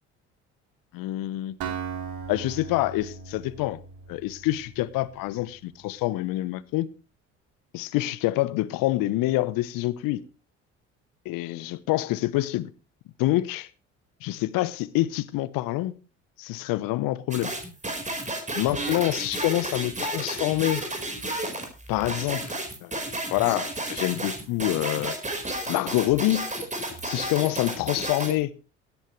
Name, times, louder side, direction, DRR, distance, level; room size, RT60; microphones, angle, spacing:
voice 1, 0.9-1.6 2.3-3.8 4.1-6.9 7.7-10.2 11.2-12.7 13.2-13.7 14.2-15.9 16.4-17.5 18.5-20.8 21.9-25.2 25.7-26.5 27.0-28.5, left 17 dB, 60° left, 1.0 m, -26 dB
Acoustic guitar, 1.6-5.5, right 6 dB, 65° right, 3.7 m, -38 dB
sound 1, 17.3-28.4, right 2 dB, 20° right, 4.5 m, -32 dB
17.0 x 11.5 x 3.2 m
hypercardioid pair, 60°, 37 cm